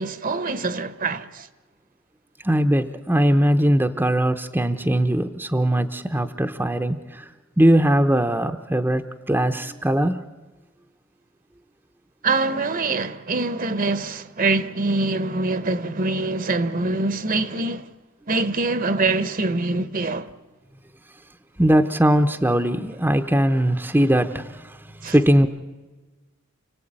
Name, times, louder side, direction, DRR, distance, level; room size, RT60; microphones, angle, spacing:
voice 1, 0.0-1.5 12.2-17.9 18.3-20.3 25.0-25.1, right 3 dB, 40° right, 1.0 m, -24 dB
voice 2, 2.4-7.3 7.6-10.2 21.6-24.8 25.0-25.5, right 1 dB, 10° right, 0.8 m, -20 dB
29.5 x 18.0 x 8.9 m
head